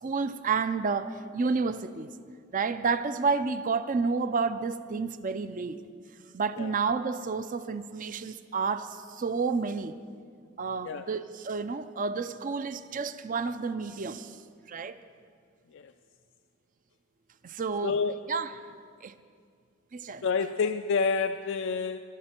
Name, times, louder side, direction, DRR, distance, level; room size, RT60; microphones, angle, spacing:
voice 1, 0.0-2.1 2.5-5.8 6.3-9.9 10.6-14.4 14.7-15.0 17.4-18.0 18.3-18.5 19.0-19.1 19.9-20.3, right 4 dB, 40° right, 11 dB, 0.5 m, -30 dB
voice 2, 17.8-18.1 20.2-22.0, left 5 dB, 65° left, 7 dB, 0.4 m, -28 dB
22.5 x 12.0 x 4.4 m, 2.1 s
head